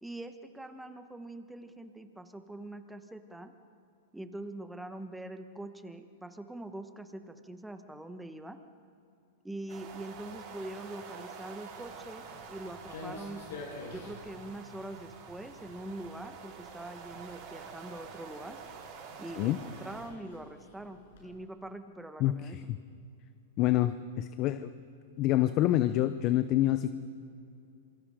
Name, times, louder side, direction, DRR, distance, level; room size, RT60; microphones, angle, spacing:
voice 1, 0.0-3.5 4.1-8.6 9.4-13.4 13.9-18.6 19.2-22.6, right 1 dB, 5° right, 8 dB, 1.4 m, -43 dB
sound 1, 9.7-20.1, right 6 dB, 45° right, 5.0 m, -48 dB
Walk footsteps, 11.8-21.3, left 3 dB, 70° left, 6.9 m, -50 dB
voice 2, 22.2-22.8 23.6-24.7 25.2-26.9, left 14 dB, 40° left, 12 dB, 0.8 m, -27 dB
27.5 x 23.5 x 5.1 m, 2.6 s
hypercardioid pair, 125°, 0 cm